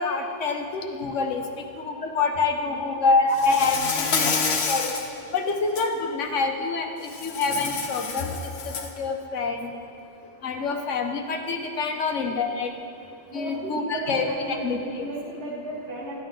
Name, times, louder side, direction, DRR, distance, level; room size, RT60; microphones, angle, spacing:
voice 1, 0.0-1.4 1.8-4.3 4.7-4.9 5.3-6.9 7.2-8.4 9.0-9.7 10.4-12.7 13.3-14.8, left 4 dB, 80° left, 4 dB, 1.3 m, -26 dB
voice 2, 2.7-3.1 13.3-16.2, right 1 dB, 65° right, -5 dB, 1.8 m, -35 dB
Insect, 3.3-5.1 5.6-5.9 7.1-9.0, left 5 dB, 60° left, 1.1 m, -28 dB
14.0 x 9.2 x 3.8 m, 2.8 s
omnidirectional pair, 1.2 m